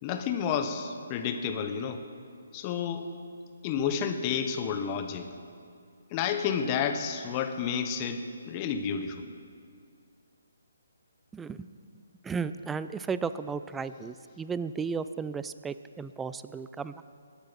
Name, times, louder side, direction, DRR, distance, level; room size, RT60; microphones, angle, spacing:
voice 1, 0.0-2.0 2.5-3.1 3.6-5.3 6.1-9.2, left 7 dB, 30° left, 7 dB, 1.1 m, -30 dB
voice 2, 11.3-11.7 12.2-17.0, right 5 dB, 10° right, 13 dB, 0.4 m, -34 dB
20.5 x 8.6 x 5.8 m, 2.3 s
figure-of-eight pair, 140°, 0 cm